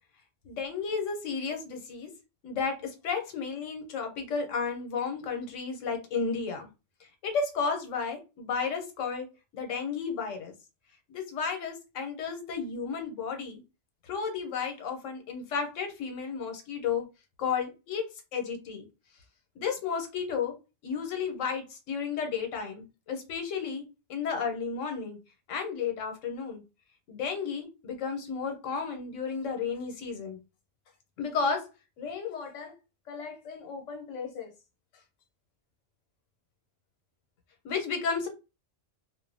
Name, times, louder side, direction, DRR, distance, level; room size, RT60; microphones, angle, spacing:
voice 1, 0.6-2.1 2.4-6.7 7.2-9.3 9.5-10.5 11.1-13.6 14.0-17.0 17.4-18.0 18.3-18.8 19.6-20.5 20.8-23.8 24.1-25.2 25.5-26.6 27.1-30.4 31.2-31.7 32.0-32.7 33.1-34.5 37.6-38.3, left 5 dB, 85° left, 4 dB, 1.1 m, -33 dB
2.6 x 2.0 x 2.6 m, 0.28 s
omnidirectional pair, 1.3 m